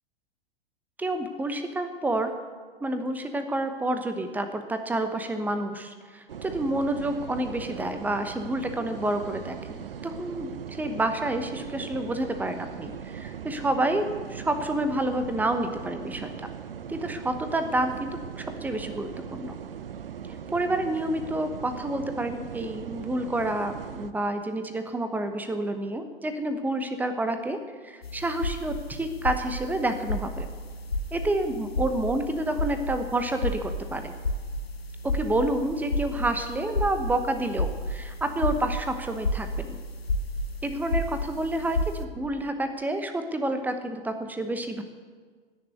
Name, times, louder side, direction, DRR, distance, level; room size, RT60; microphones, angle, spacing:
voice 1, 1.0-2.3 2.8-16.5 16.9-19.6 20.5-30.5 31.1-34.1 35.0-39.8 40.6-44.8, right 1 dB, 5° right, 8 dB, 1.1 m, -29 dB
sound 1, 6.3-24.1, right 8 dB, 70° right, 0.9 m, -39 dB
sound 2, 28.0-42.1, left 1 dB, 80° left, 1.0 m, -32 dB
16.5 x 7.0 x 9.4 m, 1.5 s
figure-of-eight pair, 95°, 30 cm